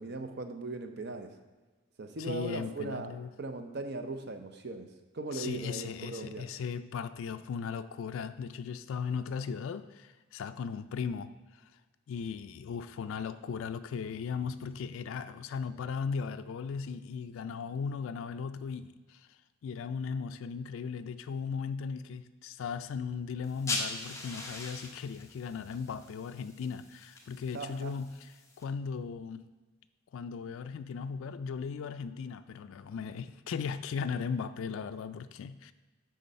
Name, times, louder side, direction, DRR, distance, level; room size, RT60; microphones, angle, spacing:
voice 1, 0.0-1.3 2.0-4.9 5.1-6.5 27.5-27.9, right 2 dB, 50° right, 0.7 m, -38 dB
voice 2, 2.2-3.3 5.3-11.6 12.1-29.5 30.1-35.7, left 6 dB, 70° left, 0.3 m, -37 dB
sound 1, 23.4-28.6, left 3 dB, 15° left, 0.8 m, -41 dB
9.3 x 3.9 x 5.5 m
head